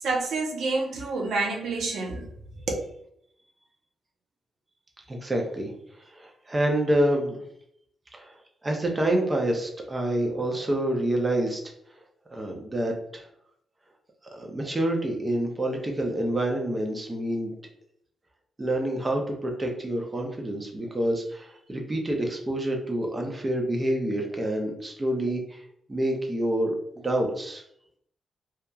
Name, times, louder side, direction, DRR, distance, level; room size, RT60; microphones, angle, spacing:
voice 1, 0.0-2.3 2.7-2.9, right 3 dB, 80° right, 0 dB, 0.6 m, -28 dB
voice 2, 5.1-7.4 8.1-8.3 8.6-11.6 12.3-13.3 14.3-17.5 18.6-25.6 25.9-27.6, right 1 dB, 20° right, 1 dB, 0.4 m, -27 dB
2.8 x 2.2 x 2.3 m, 0.73 s
wide cardioid pair, 160°, 0 cm